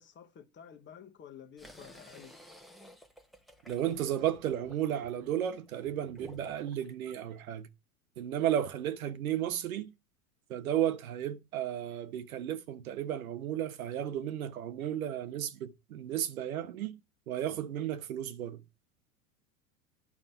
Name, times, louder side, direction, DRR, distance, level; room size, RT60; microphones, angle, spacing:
voice 1, 0.0-2.3, left 8 dB, 25° left, 1.2 m, -51 dB
sound 1, 1.6-6.9, left 1 dB, ahead, 1.0 m, -54 dB
voice 2, 3.7-7.7 8.2-9.9 10.5-17.0 17.3-18.6, right 11 dB, 80° right, 1.1 m, -33 dB
9.7 x 5.3 x 6.9 m
hypercardioid pair, 105°, 42 cm